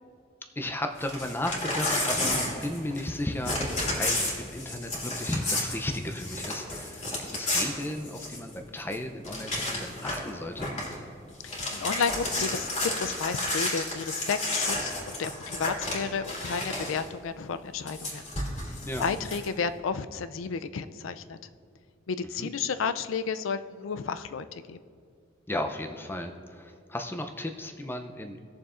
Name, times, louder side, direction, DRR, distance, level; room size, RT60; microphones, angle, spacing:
voice 1, 0.6-10.7 18.9-19.1 22.4-22.5 25.5-28.4, left 1 dB, 10° left, 5 dB, 0.5 m, -34 dB
Crumpling crinkling / Tearing, 1.0-3.2 3.4-8.5 8.9-9.0 9.2-10.3 10.6-10.9 11.3-17.1 17.9-19.5, left 2 dB, 35° left, 2.5 m, -31 dB
voice 2, 11.4-12.7 13.0-18.3 19.0-21.4 22.1-24.8, left 5 dB, 85° left, 11 dB, 0.4 m, -32 dB
19.0 x 7.0 x 2.5 m, 2.3 s
head